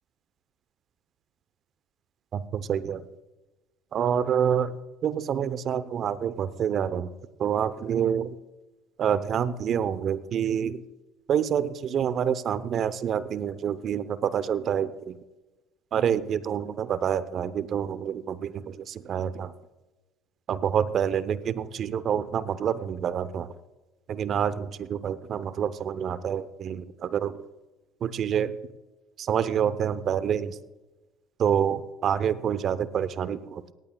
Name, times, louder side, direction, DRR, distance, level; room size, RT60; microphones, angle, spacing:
voice 1, 2.3-3.0 3.9-4.8 5.0-7.1 7.4-8.4 9.0-10.8 11.3-15.2 15.9-19.5 20.5-23.5 24.1-27.4 28.0-28.5 29.2-30.6 31.4-33.7, right 8 dB, 50° right, 15 dB, 0.7 m, -27 dB
18.5 x 15.0 x 2.3 m, 1.1 s
hypercardioid pair, 70°, 0 cm